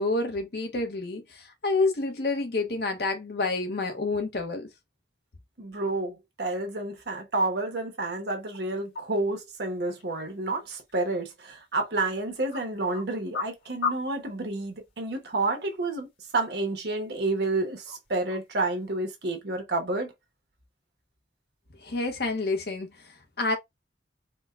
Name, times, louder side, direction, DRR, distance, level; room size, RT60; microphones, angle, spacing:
voice 1, 0.0-4.7 21.8-23.6, left 3 dB, 60° left, 0.7 m, -28 dB
voice 2, 5.6-16.1 16.3-20.1, right 2 dB, 70° right, 1.0 m, -30 dB
sound 1, 8.4-19.4, left 6 dB, 80° left, 1.4 m, -42 dB
4.3 x 2.1 x 2.4 m
head